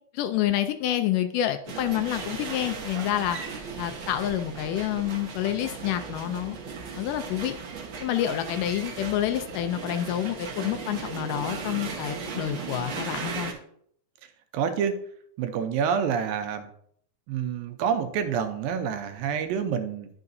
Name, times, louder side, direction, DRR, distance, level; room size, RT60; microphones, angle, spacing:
voice 1, 0.1-3.4 3.8-6.6 7.0-7.6 8.0-13.5, left 12 dB, 80° left, 8 dB, 2.0 m, -28 dB
sound 1, 1.7-13.5, right 5 dB, 65° right, 1.1 m, -37 dB
voice 2, 14.5-15.0 15.4-16.7 17.3-20.1, right 7 dB, 85° right, 7 dB, 2.5 m, -27 dB
12.0 x 5.8 x 2.6 m, 0.65 s
omnidirectional pair, 4.0 m